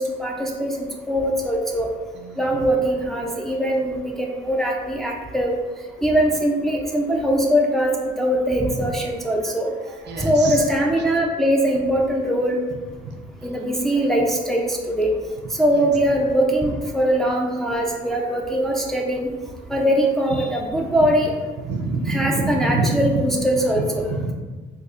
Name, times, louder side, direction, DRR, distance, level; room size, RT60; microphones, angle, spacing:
voice 1, 0.0-1.9 2.4-5.5 6.0-9.7 10.2-12.6 13.4-15.1 15.6-19.3 19.7-21.3 22.1-24.0, equal, ahead, -1 dB, 0.4 m, -21 dB
voice 2, 2.1-2.7 9.8-10.8 13.0-13.2 15.7-15.9 20.7-20.8 21.6-23.1 23.8-24.3, right 3 dB, 60° right, 3 dB, 0.5 m, -27 dB
4.0 x 2.6 x 2.4 m, 1.3 s
cardioid pair, 90°, 20 cm